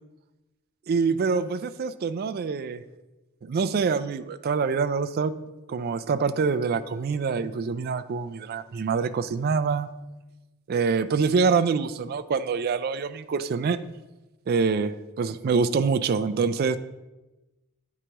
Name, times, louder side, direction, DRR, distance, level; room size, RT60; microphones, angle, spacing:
voice 1, 0.9-2.8 3.4-5.3 5.7-9.9 10.7-13.8 14.5-16.8, right 5 dB, 45° right, 12 dB, 0.3 m, -25 dB
9.0 x 4.8 x 2.9 m, 1.1 s
head